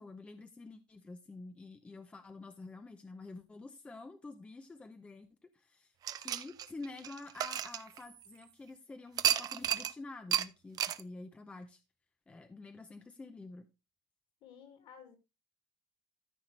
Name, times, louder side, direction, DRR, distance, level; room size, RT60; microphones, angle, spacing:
voice 1, 0.0-11.8 12.3-13.6, left 3 dB, 10° left, 0.5 m, -49 dB
sound 1, 6.0-8.4 9.2-9.9 10.3-10.5 10.8-11.0, right 11 dB, 35° right, 0.5 m, -33 dB
voice 2, 14.4-15.2, left 7 dB, 50° left, 2.3 m, -54 dB
13.5 x 5.7 x 3.2 m
cardioid pair, 165°, 11 cm